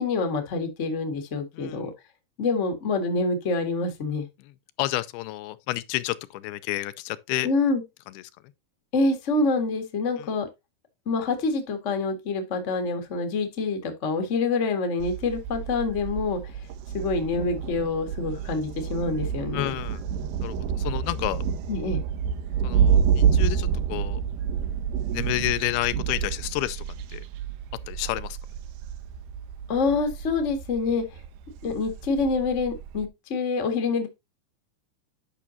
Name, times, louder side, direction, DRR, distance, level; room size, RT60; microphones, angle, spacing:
voice 1, 0.0-1.9 2.4-4.3 7.4-7.8 8.9-10.5 11.0-16.5 16.9-19.7 21.7-22.0 29.7-31.0 31.6-34.1, left 3 dB, 50° left, 0.8 m, -26 dB
voice 2, 4.8-7.5 8.2-8.3 10.2-10.3 19.5-20.0 20.4-21.4 22.6-24.2 25.1-26.8 27.1-27.2 27.9-28.4, left 17 dB, 85° left, 2.6 m, -30 dB
Thunder, 15.0-33.1, right 7 dB, 85° right, 2.7 m, -28 dB
10.5 x 6.0 x 2.7 m
omnidirectional pair, 4.5 m